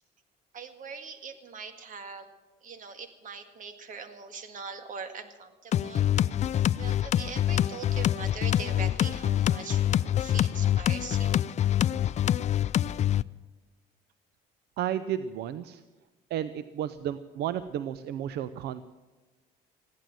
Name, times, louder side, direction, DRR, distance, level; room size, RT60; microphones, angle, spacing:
voice 1, 0.5-2.3 2.6-9.9 10.2-11.4, right 5 dB, 50° right, 7 dB, 2.0 m, -42 dB
sound 1, 5.7-13.2, left 11 dB, 40° left, 0.4 m, -26 dB
voice 2, 14.8-15.8 16.3-18.8, right 10 dB, 75° right, 13 dB, 0.6 m, -32 dB
15.5 x 11.5 x 7.5 m, 1.2 s
cardioid pair, 110°, 17 cm